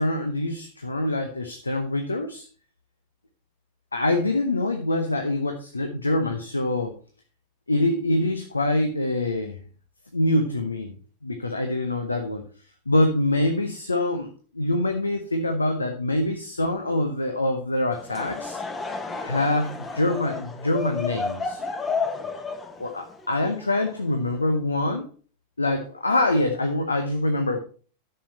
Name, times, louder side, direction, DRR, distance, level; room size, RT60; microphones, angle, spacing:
voice 1, 0.0-2.5 3.9-6.9 7.7-9.6 10.1-10.9 11.2-12.4 12.9-18.6 19.2-21.6 22.8-25.1 25.6-27.6, left 1 dB, 80° left, 6 dB, 1.0 m, -25 dB
Laughter / Crowd, 17.9-24.4, left 4 dB, 20° left, 1.1 m, -32 dB
10.5 x 6.8 x 4.2 m, 0.40 s
figure-of-eight pair, 90°, 0 cm